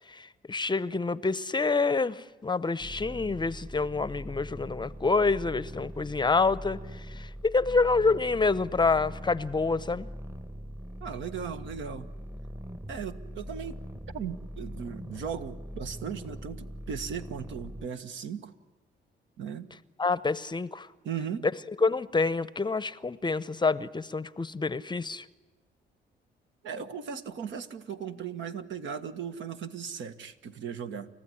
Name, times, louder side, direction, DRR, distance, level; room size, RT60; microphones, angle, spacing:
voice 1, 0.1-10.1 20.0-20.9 21.8-25.2, left 4 dB, 20° left, 0.7 m, -27 dB
sound 1, 2.8-17.9, equal, 10° right, 1.1 m, -42 dB
voice 2, 11.0-12.1 12.9-13.8 14.1-18.5 19.4-19.7 21.0-21.5 26.6-31.1, right 7 dB, 70° right, 1.5 m, -37 dB
29.5 x 15.0 x 10.0 m
cardioid pair, 90°, 20 cm